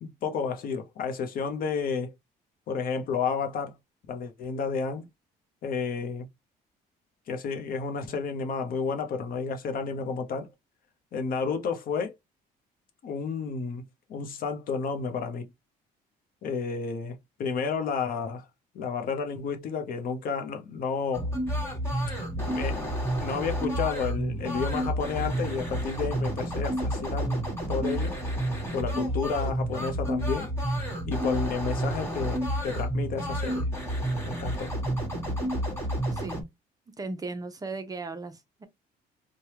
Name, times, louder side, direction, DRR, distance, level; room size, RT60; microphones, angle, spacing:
voice 1, 0.0-2.1 2.7-3.7 4.1-5.1 5.6-6.3 7.3-10.5 11.1-12.1 13.0-15.5 16.4-18.5 18.7-21.3 22.4-28.2 28.7-30.5 31.1-33.7 34.2-34.7, left 5 dB, 60° left, 0.8 m, -31 dB
sound 1, 21.1-36.4, right 1 dB, 15° left, 1.4 m, -30 dB
voice 2, 37.0-38.7, right 3 dB, 20° right, 0.6 m, -37 dB
3.3 x 2.2 x 2.8 m
cardioid pair, 110°, 17 cm